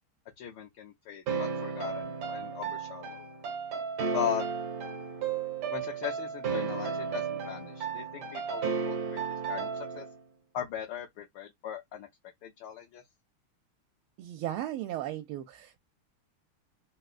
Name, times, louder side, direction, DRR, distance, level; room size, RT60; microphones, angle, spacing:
voice 1, 0.4-3.3 4.1-4.4 5.7-9.2 9.5-10.1 10.5-12.1 12.4-13.0, left 10 dB, 70° left, 1.1 m, -38 dB
sound 1, 1.3-10.1, right 6 dB, 60° right, 1.3 m, -34 dB
voice 2, 14.2-15.8, right 13 dB, 80° right, 1.4 m, -36 dB
3.7 x 2.2 x 2.4 m
omnidirectional pair, 2.4 m